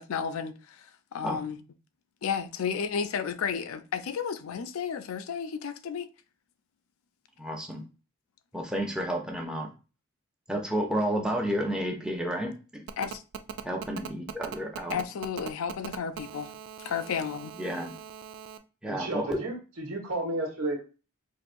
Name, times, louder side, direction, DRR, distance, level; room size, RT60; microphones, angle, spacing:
voice 1, 0.0-1.6 2.2-6.1 13.0-13.2 14.9-16.5 16.8-17.5, left 7 dB, 75° left, 0.4 m, -32 dB
voice 2, 7.4-7.8 8.5-9.7 10.5-12.8 13.6-15.0 17.6-17.9 18.8-19.4, equal, 5° right, 0.5 m, -31 dB
Telephone, 12.9-18.6, right 8 dB, 60° right, 0.3 m, -40 dB
voice 3, 18.8-20.8, right 2 dB, 85° right, 1.3 m, -32 dB
4.6 x 2.6 x 2.5 m
head